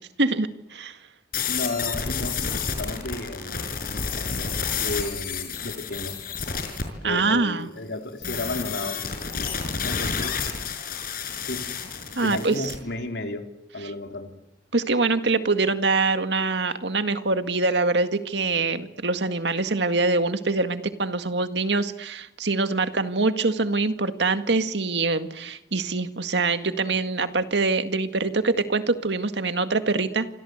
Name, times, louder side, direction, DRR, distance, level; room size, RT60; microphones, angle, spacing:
voice 1, 0.2-0.9 7.0-7.7 12.2-12.7 14.7-30.3, right 3 dB, 75° right, 9 dB, 1.9 m, -24 dB
sound 1, 1.3-6.8 8.2-12.8, left 6 dB, 55° left, 5.7 m, -30 dB
voice 2, 1.4-3.6 4.7-6.2 7.0-9.0 9.8-10.4 11.5-11.6 12.2-13.5 13.7-14.3, left 2 dB, 70° left, 4 dB, 4.0 m, -33 dB
28.0 x 25.5 x 8.1 m, 0.86 s
head